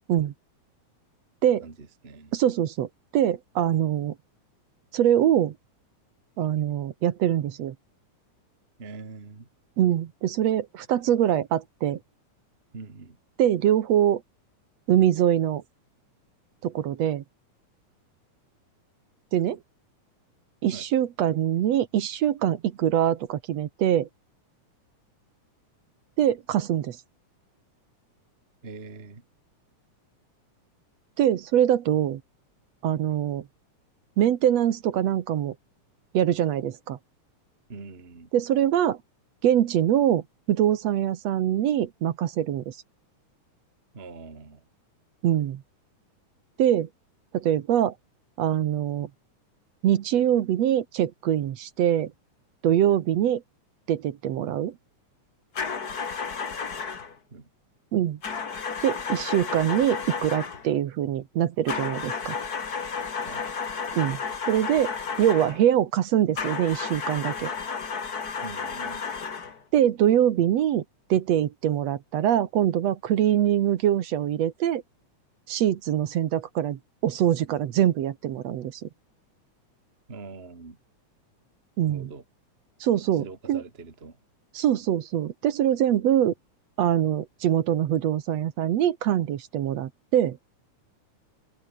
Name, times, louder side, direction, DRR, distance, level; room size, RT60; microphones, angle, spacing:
voice 1, 1.6-2.3 8.8-9.5 12.7-13.2 20.7-20.9 28.6-29.2 37.7-38.3 43.9-44.6 57.3-57.5 63.3-63.4 68.4-69.1 80.1-80.8 81.9-82.2 83.1-84.2, right 4 dB, 20° right, 2.1 m, -43 dB
voice 2, 2.3-4.2 4.9-5.6 6.4-7.8 9.8-12.0 13.4-14.2 14.9-15.6 16.6-17.2 19.3-19.6 20.6-24.1 26.2-27.0 31.2-32.2 32.8-33.5 34.2-35.6 36.1-37.0 38.3-39.0 39.4-42.8 45.2-45.6 46.6-46.9 47.3-47.9 48.4-49.1 49.8-52.1 52.6-53.4 53.9-54.8 57.9-58.2 58.8-62.4 63.9-64.2 64.5-67.5 69.7-70.8 71.1-74.8 75.5-78.9 81.8-82.1 82.8-83.6 84.6-86.3 86.8-90.4, right 11 dB, 65° right, 2.2 m, -23 dB
sound 1, 55.6-57.1 58.2-60.7 61.7-65.6 66.4-69.6, left 5 dB, 35° left, 2.2 m, -32 dB
open air
omnidirectional pair, 3.5 m